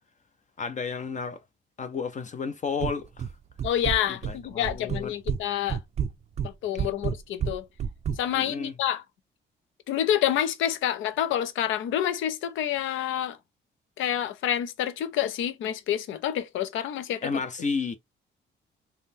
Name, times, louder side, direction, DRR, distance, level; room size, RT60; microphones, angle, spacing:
voice 1, 0.6-1.4 1.8-3.3 4.1-5.1 8.3-8.7 17.2-18.0, left 5 dB, 40° left, 0.5 m, -32 dB
sound 1, 2.8-3.3 3.6-4.4 4.6-5.4 5.7-8.2, right 8 dB, 35° right, 0.4 m, -29 dB
voice 2, 3.6-5.8 6.4-7.6 8.2-9.0 9.9-13.4 14.0-17.3, left 11 dB, 80° left, 0.6 m, -28 dB
3.6 x 2.1 x 2.7 m
cardioid pair, 90°, 20 cm